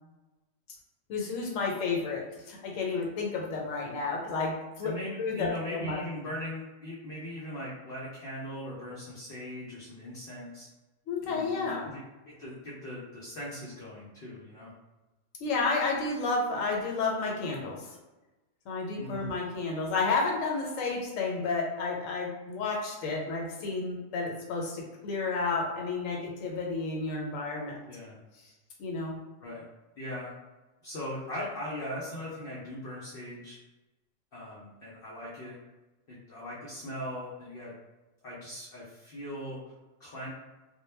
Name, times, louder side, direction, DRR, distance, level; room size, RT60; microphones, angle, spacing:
voice 1, 1.1-6.0 11.1-11.9 15.4-17.9 18.7-27.8 28.8-29.2, left 4 dB, 75° left, -1 dB, 1.0 m, -31 dB
voice 2, 4.8-10.7 11.2-14.7 19.0-19.3 27.9-28.2 29.4-29.6 30.0-30.3 30.8-33.6 34.3-35.6 36.1-37.7 38.2-39.6 40.0-40.3, left 1 dB, 55° left, -6 dB, 0.7 m, -40 dB
2.2 x 2.2 x 3.1 m, 1.1 s
omnidirectional pair, 1.4 m